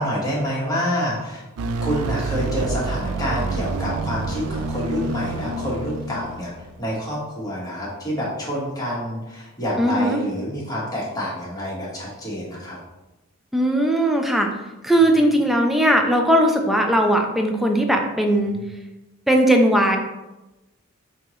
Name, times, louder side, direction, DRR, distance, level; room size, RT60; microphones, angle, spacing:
voice 1, 0.0-1.4 1.8-6.5 6.8-12.8 18.4-18.6, equal, 20° left, -6 dB, 1.4 m, -27 dB
sound 1, 1.6-6.9, right 3 dB, 90° right, 0.4 m, -28 dB
voice 2, 9.8-10.2 13.5-14.5 14.8-18.6 19.3-20.0, right 1 dB, ahead, 2 dB, 0.5 m, -18 dB
5.5 x 2.9 x 3.1 m, 1.0 s
head